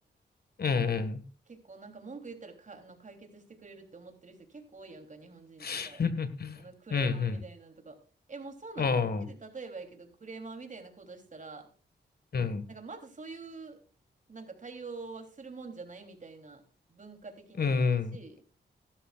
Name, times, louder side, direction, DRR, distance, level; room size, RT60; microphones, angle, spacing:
voice 1, 0.6-1.2 5.6-6.6 6.9-7.4 8.8-9.3 12.3-12.6 17.6-18.2, left 5 dB, 60° left, 11 dB, 1.9 m, -29 dB
voice 2, 1.5-6.0 6.6-8.0 8.3-8.9 9.2-11.7 12.7-13.8 14.3-16.6 16.9-18.4, right 4 dB, 45° right, 5 dB, 3.4 m, -46 dB
17.0 x 12.0 x 2.5 m, 0.36 s
cardioid pair, 80°, 18 cm